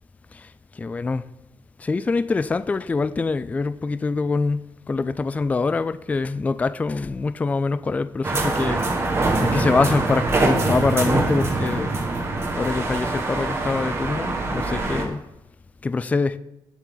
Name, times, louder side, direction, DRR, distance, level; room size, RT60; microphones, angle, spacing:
voice 1, 0.8-1.2 1.8-8.8 9.4-12.1 12.6-15.2 15.8-16.4, left 4 dB, 15° left, 0.3 m, -24 dB
sound 1, 8.2-15.0, right 3 dB, 30° right, 1.7 m, -24 dB
18.5 x 7.2 x 3.9 m
wide cardioid pair, 160°, 9 cm